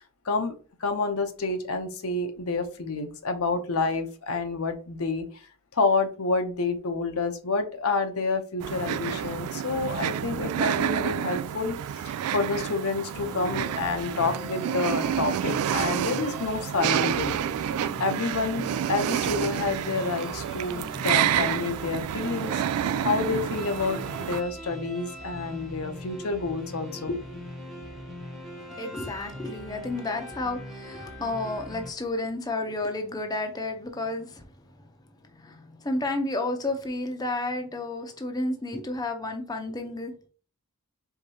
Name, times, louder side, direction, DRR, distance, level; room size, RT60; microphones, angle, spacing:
voice 1, 0.8-5.3 5.7-11.8 12.0-17.3 18.0-22.6 23.0-27.2, left 3 dB, 80° left, 0.7 m, -28 dB
sound 1, 8.6-24.4, right 10 dB, 90° right, 0.3 m, -29 dB
sound 2, 13.1-31.9, equal, ahead, 0.9 m, -41 dB
voice 2, 28.7-34.4 35.4-40.1, left 2 dB, 20° left, 0.6 m, -31 dB
4.8 x 3.5 x 2.8 m
head